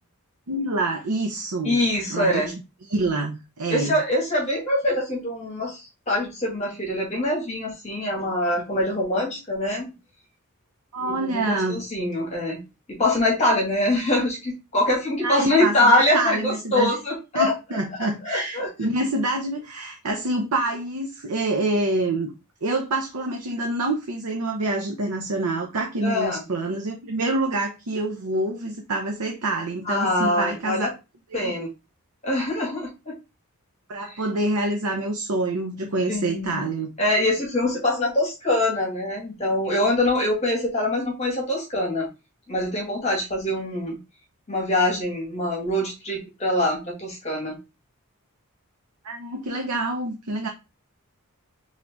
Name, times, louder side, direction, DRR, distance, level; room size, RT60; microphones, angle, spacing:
voice 1, 0.5-1.8 2.1-2.5 2.9-4.0 10.9-11.8 15.2-17.0 17.3-22.3 22.6-30.9 31.3-31.5 33.9-36.9 49.0-50.5, right 2 dB, 80° right, 0.7 m, -26 dB
voice 2, 1.6-2.5 3.7-9.9 11.0-12.6 12.9-17.5 18.0-18.7 26.0-26.4 29.9-30.9 31.3-31.7 32.2-33.2 34.1-34.2 36.1-36.6 37.0-42.1 42.5-44.0 44.5-47.6, left 1 dB, 30° left, 2.0 m, -24 dB
3.9 x 3.6 x 3.6 m
head